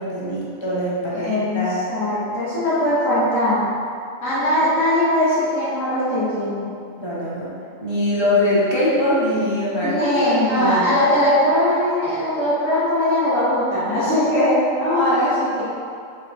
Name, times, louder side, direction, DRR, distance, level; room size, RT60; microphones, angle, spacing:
voice 1, 0.0-1.8 6.9-7.5 7.8-10.9, left 1 dB, 30° left, -7 dB, 0.5 m, -22 dB
voice 2, 1.1-1.6 1.9-3.7 4.2-6.7 9.8-15.6, left 1 dB, 70° left, -13 dB, 1.8 m, -20 dB
4.7 x 2.2 x 3.9 m, 2.5 s
omnidirectional pair, 1.4 m